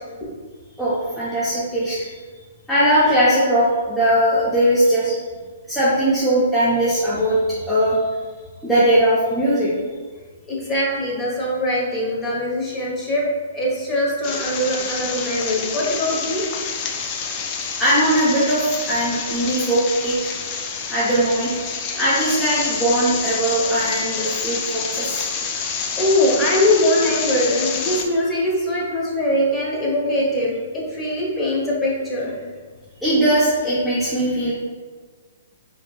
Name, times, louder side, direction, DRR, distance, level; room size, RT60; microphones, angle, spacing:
voice 1, 0.8-2.2 2.7-5.2 5.7-8.0 8.6-9.7 16.9-17.0 17.8-20.1 20.9-21.5 22.0-25.2 33.0-34.5, right 1 dB, 5° left, -11 dB, 0.8 m, -19 dB
voice 2, 10.5-13.2 13.5-16.4 26.0-32.4, left 1 dB, 20° left, -5 dB, 1.1 m, -22 dB
sound 1, 14.2-28.0, left 6 dB, 35° left, 0.4 m, -28 dB
4.3 x 2.8 x 2.3 m, 1.5 s
hypercardioid pair, 130°, 0 cm